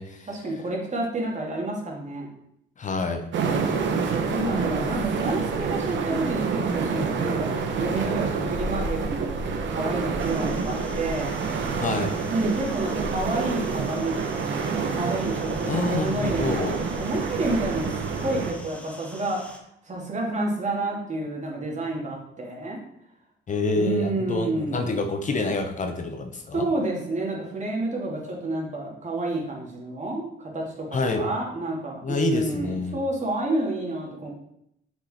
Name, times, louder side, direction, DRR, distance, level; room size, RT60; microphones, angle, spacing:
voice 1, 0.3-2.3 3.8-11.3 12.2-17.9 18.2-19.4 19.9-22.8 23.8-24.9 26.5-34.3, right 2 dB, 35° right, -1 dB, 2.3 m, -29 dB
voice 2, 2.8-3.3 11.8-12.1 15.7-16.8 23.5-26.7 30.9-31.3 32.0-33.0, left 3 dB, 40° left, 6 dB, 0.8 m, -27 dB
sound 1, 3.3-18.5, right 5 dB, 70° right, 1.0 m, -28 dB
sound 2, 10.2-19.6, left 1 dB, 5° left, 1.2 m, -46 dB
6.3 x 5.3 x 4.2 m, 0.77 s
cardioid pair, 90°, 20 cm